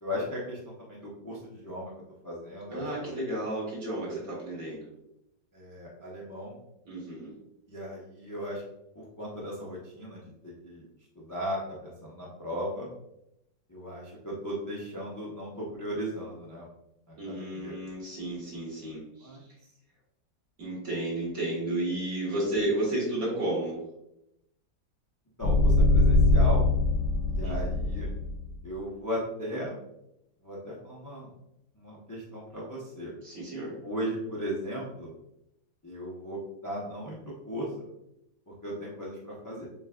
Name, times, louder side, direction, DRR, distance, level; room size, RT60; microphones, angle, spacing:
voice 1, 0.0-1.9 2.2-3.1 5.5-6.5 7.7-8.6 8.9-10.8 11.1-12.9 13.7-16.7 17.1-17.7 19.2-19.4 25.4-26.6 27.3-28.1 28.6-29.7 30.4-31.3 31.8-33.1 33.8-35.1 35.8-37.2 37.4-37.9 38.5-39.7, equal, 30° left, -5 dB, 0.3 m, -37 dB
voice 2, 2.7-4.9 6.9-7.3 17.2-19.3 20.6-23.8 27.4-27.8 33.2-33.7, right 1 dB, 55° right, -6 dB, 1.9 m, -32 dB
sound 1, 25.4-28.5, left 2 dB, 75° left, 1.2 m, -23 dB
7.0 x 2.4 x 2.3 m, 0.84 s
omnidirectional pair, 1.9 m